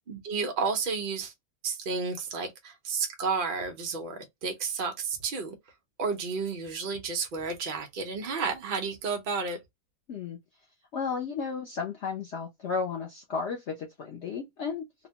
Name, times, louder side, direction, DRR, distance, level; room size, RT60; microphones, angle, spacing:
voice 1, 0.1-1.3 1.6-5.6 6.0-9.6, right 5 dB, 90° right, 0.4 m, -31 dB
voice 2, 10.9-14.9, left 5 dB, 65° left, 0.7 m, -33 dB
2.8 x 2.1 x 2.7 m
omnidirectional pair, 1.8 m